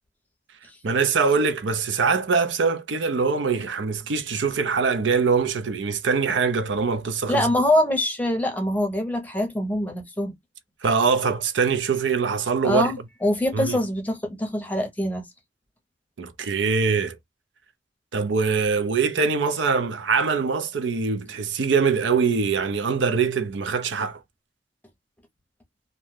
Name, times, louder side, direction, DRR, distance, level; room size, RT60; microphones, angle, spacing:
voice 1, 0.8-7.4 10.8-12.9 13.5-13.8 16.2-17.2 18.1-24.2, right 5 dB, 85° right, 0.5 m, -23 dB
voice 2, 7.3-10.3 12.6-15.3, left 1 dB, 10° left, 0.7 m, -24 dB
2.6 x 2.1 x 3.2 m
head